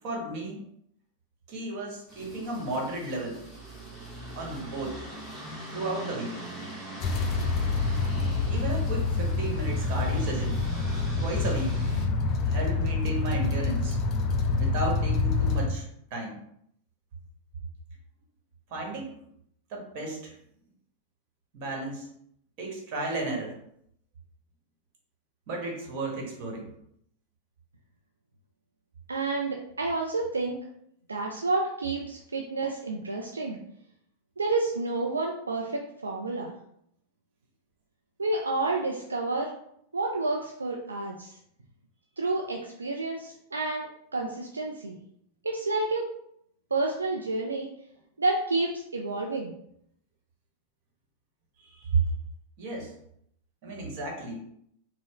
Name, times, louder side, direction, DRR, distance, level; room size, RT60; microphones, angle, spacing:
voice 1, 0.0-0.6 1.5-3.4 4.4-5.1 5.7-6.4 8.5-10.6 11.2-11.8 12.4-14.0 14.5-15.8 16.1-16.4 18.7-19.3 19.7-20.4 21.5-22.1 22.6-23.5 25.5-26.7 51.6-52.0 52.6-52.9 53.6-54.4, right 3 dB, 45° right, 0 dB, 1.1 m, -33 dB
sound 1, 2.1-12.1, equal, ahead, 1.0 m, -42 dB
sound 2, 7.0-15.7, left 3 dB, 35° left, 0.4 m, -27 dB
voice 2, 29.1-30.6 31.1-33.6 34.4-36.5 38.2-39.5 39.9-41.3 42.2-43.9 44.1-45.0 45.4-46.1 46.7-47.7 48.2-49.5, right 3 dB, 75° right, 0 dB, 0.3 m, -29 dB
4.4 x 2.0 x 2.9 m, 0.72 s
figure-of-eight pair, 90°, 0 cm